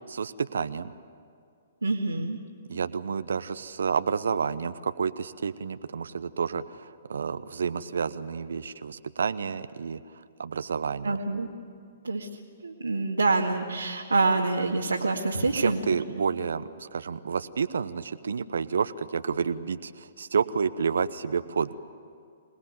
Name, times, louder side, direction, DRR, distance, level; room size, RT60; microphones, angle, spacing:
voice 1, 0.1-0.9 2.7-10.0 10.4-11.2 15.5-21.8, right 6 dB, 70° right, 12 dB, 0.8 m, -30 dB
voice 2, 1.8-2.4 11.0-11.5 12.0-12.3 12.6-15.8, right 3 dB, 85° right, -1 dB, 2.0 m, -26 dB
26.5 x 19.0 x 9.4 m, 2.3 s
figure-of-eight pair, 125°, 0 cm